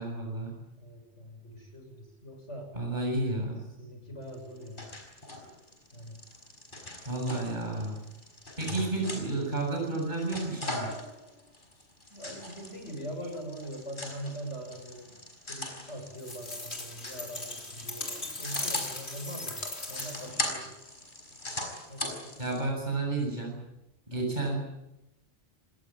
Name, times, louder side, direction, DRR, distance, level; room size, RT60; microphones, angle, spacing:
voice 1, 0.0-0.6 2.7-3.6 7.0-8.0 8.6-10.9 22.4-23.6 24.1-24.6, right 2 dB, 40° right, 0 dB, 7.8 m, -31 dB
voice 2, 0.8-2.7 3.8-4.9 5.9-6.2 8.6-8.9 12.1-15.1 15.4-20.7 21.9-22.5 24.1-24.2, equal, 85° left, 4 dB, 7.2 m, -42 dB
sound 1, 4.3-22.6, left 1 dB, 45° left, 5.6 m, -40 dB
sound 2, 16.2-20.4, left 2 dB, 65° left, 4.1 m, -38 dB
27.5 x 19.5 x 8.8 m, 0.92 s
omnidirectional pair, 1.2 m